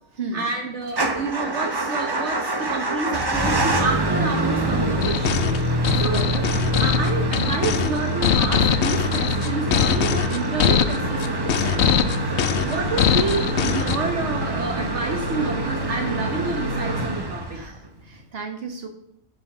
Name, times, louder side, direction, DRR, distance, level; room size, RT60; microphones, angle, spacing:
voice 1, 0.3-5.5 5.9-6.5 6.8-11.9 12.2-17.6, right 3 dB, 70° right, 2 dB, 1.4 m, -29 dB
Motor vehicle (road) / Engine starting / Idling, 0.9-17.9, right 1 dB, 20° right, 0.9 m, -25 dB
sound 1, 5.0-14.0, left 8 dB, 70° left, 0.9 m, -22 dB
voice 2, 6.1-6.5 17.5-18.9, right 3 dB, 55° right, 4 dB, 1.8 m, -34 dB
sound 2, 6.9-18.2, left 1 dB, 85° right, 3.3 m, -39 dB
11.5 x 5.5 x 7.3 m, 0.72 s
omnidirectional pair, 1.3 m